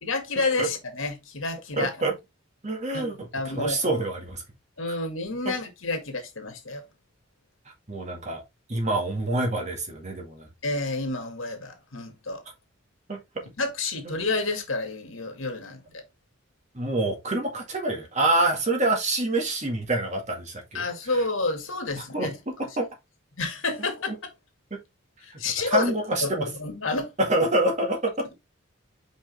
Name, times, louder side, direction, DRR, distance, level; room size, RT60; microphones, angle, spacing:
voice 1, 0.0-2.0 2.9-4.0 4.8-6.8 10.6-12.4 13.6-16.0 20.7-22.4 23.4-24.1 25.2-25.9 26.2-27.1, left 3 dB, 80° left, 2.1 m, -29 dB
voice 2, 1.8-2.1 2.6-3.3 3.5-4.4 5.5-5.6 7.9-8.4 8.7-10.5 13.1-13.2 16.7-20.8 22.1-22.3 22.8-22.9 24.1-24.2 24.7-24.8 25.7-26.5 27.2-28.3, right 2 dB, 35° right, 1.9 m, -26 dB
5.3 x 5.3 x 3.4 m
head